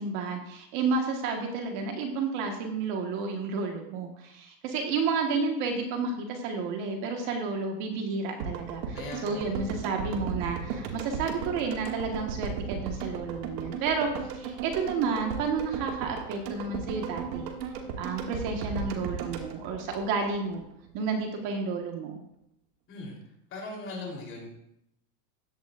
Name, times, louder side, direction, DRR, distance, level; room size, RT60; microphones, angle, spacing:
voice 1, 0.0-17.5 18.0-20.6 20.9-22.2, right 4 dB, 40° right, 3 dB, 1.6 m, -31 dB
sound 1, 8.4-20.6 20.9-21.0, right 5 dB, 85° right, 2.2 m, -36 dB
voice 2, 8.9-9.6 22.9-23.2 23.5-24.5, left 2 dB, 25° left, -1 dB, 3.7 m, -39 dB
16.0 x 11.5 x 2.6 m, 0.78 s
supercardioid pair, 160°, 49 cm